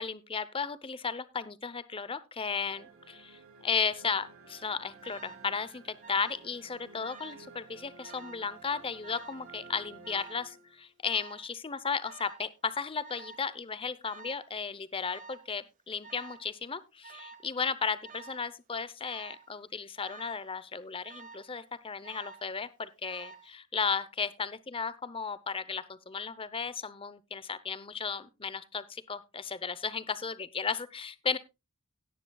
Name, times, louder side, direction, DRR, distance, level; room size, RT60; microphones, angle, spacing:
voice 1, 0.0-31.4, left 5 dB, 25° left, 16 dB, 0.7 m, -35 dB
sound 1, 2.6-11.0, right 4 dB, 80° right, 3.5 m, -53 dB
Alarm, 5.0-5.5 6.0-6.5 6.8-7.5 8.0-8.5 9.0-9.5 10.0-10.5 11.0-11.5 12.0-12.5 13.0-13.5 14.0-14.5 15.0-15.5 16.0-16.5 17.0-17.5 18.0-18.5 19.0-19.5 20.0-20.5 21.0-21.5 22.0-22.5 23.0-23.5, right 5 dB, 40° right, 1.8 m, -50 dB
17.5 x 9.6 x 2.3 m, 0.25 s
head